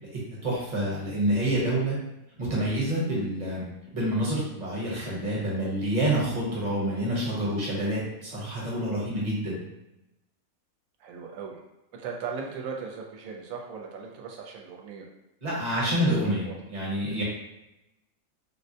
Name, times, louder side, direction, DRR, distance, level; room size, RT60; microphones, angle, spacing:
voice 1, 0.0-2.0 2.4-3.6 3.9-9.6 15.4-17.2, right 1 dB, 30° right, -6 dB, 1.0 m, -28 dB
voice 2, 11.0-11.6 11.9-15.1 15.8-15.9 16.3-16.5, right 5 dB, 75° right, 1 dB, 1.0 m, -38 dB
3.6 x 2.2 x 2.7 m, 0.91 s
omnidirectional pair, 1.5 m